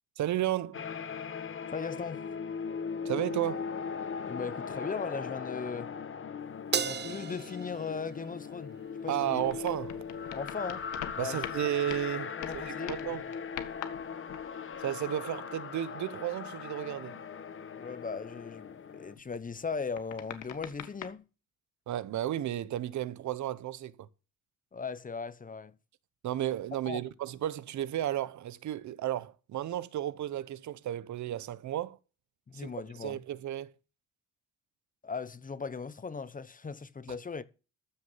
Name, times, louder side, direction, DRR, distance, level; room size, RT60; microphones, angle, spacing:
voice 1, 0.2-0.8 3.0-3.6 9.1-10.0 11.2-13.2 14.8-17.2 21.9-23.9 26.2-32.0 32.5-33.7, right 12 dB, 70° right, 1.0 m, -33 dB
sound 1, 0.7-19.1, left 6 dB, 45° left, 1.4 m, -39 dB
voice 2, 1.7-2.2 4.3-5.9 6.7-8.7 9.0-9.4 10.3-10.9 11.1-11.4 12.4-13.2 17.8-21.2 24.7-25.7 26.9-27.0 32.5-33.2 35.0-37.4, left 5 dB, 25° left, 1.0 m, -38 dB
Crash cymbal, 6.7-9.3, right 7 dB, 35° right, 0.7 m, -36 dB
sound 2, 9.2-12.1 12.4-14.9 19.2-21.1, left 10 dB, 90° left, 1.7 m, -44 dB
14.0 x 6.4 x 5.7 m
cardioid pair, 90°, 30 cm